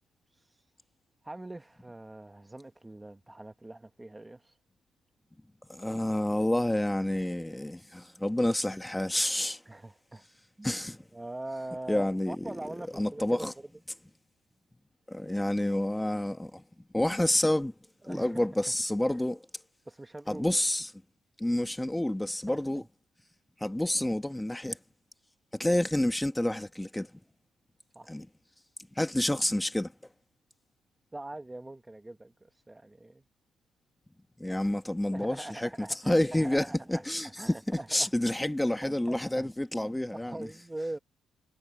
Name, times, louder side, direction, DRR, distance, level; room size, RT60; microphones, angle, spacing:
voice 1, 1.2-4.6 9.7-10.2 10.6-10.8 11.1-13.7 18.0-18.5 19.9-20.5 22.5-22.9 27.9-28.1 31.1-33.2 35.1-38.1 38.8-39.5 39.8-41.0, right 2 dB, 15° right, 1.1 m, -42 dB
voice 2, 5.7-9.6 10.6-11.0 11.9-12.4 13.0-13.5 15.1-16.6 16.9-17.7 18.1-19.4 20.3-20.9 21.4-22.8 23.6-24.8 25.5-27.1 28.1-28.3 29.0-29.9 34.4-40.5, left 1 dB, 10° left, 1.4 m, -29 dB
cardioid pair, 90°, 0 cm